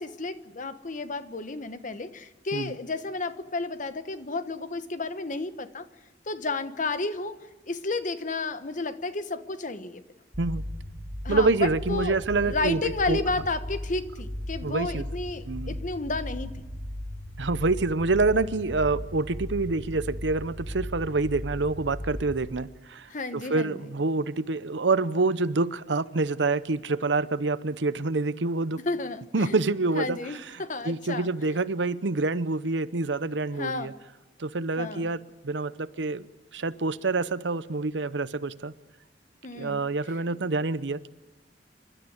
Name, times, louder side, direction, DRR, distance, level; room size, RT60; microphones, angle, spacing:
voice 1, 0.0-5.9 6.3-7.3 7.7-10.0 11.2-16.6 23.1-23.8 28.8-29.6 29.9-31.5 33.6-33.9 34.8-35.1 39.4-39.8, left 3 dB, 45° left, 11 dB, 1.2 m, -32 dB
sound 1, 10.3-22.4, left 1 dB, 20° left, 5.2 m, -37 dB
voice 2, 11.3-12.8 13.1-13.2 14.6-15.1 15.5-15.8 17.4-28.8 29.3-30.2 30.8-33.9 34.4-36.3 36.5-38.7 39.5-41.1, right 3 dB, 80° right, 15 dB, 0.8 m, -27 dB
27.5 x 12.5 x 9.7 m, 1.1 s
head